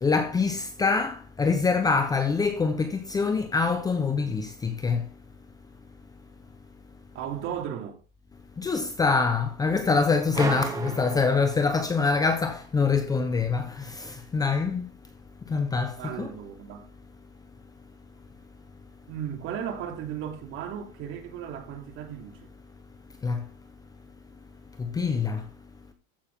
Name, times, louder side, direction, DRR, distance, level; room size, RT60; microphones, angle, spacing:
voice 1, 0.0-5.0 8.6-14.9 15.5-16.3 23.2-23.4 24.8-25.4, left 4 dB, 10° left, 0.8 m, -25 dB
voice 2, 7.1-8.0 10.6-11.0 16.0-16.9 19.1-22.5, right 9 dB, 40° right, 2.9 m, -36 dB
sound 1, 10.3-12.1, right 4 dB, 10° right, 1.8 m, -33 dB
14.5 x 6.9 x 3.6 m
supercardioid pair, 155°, 30 cm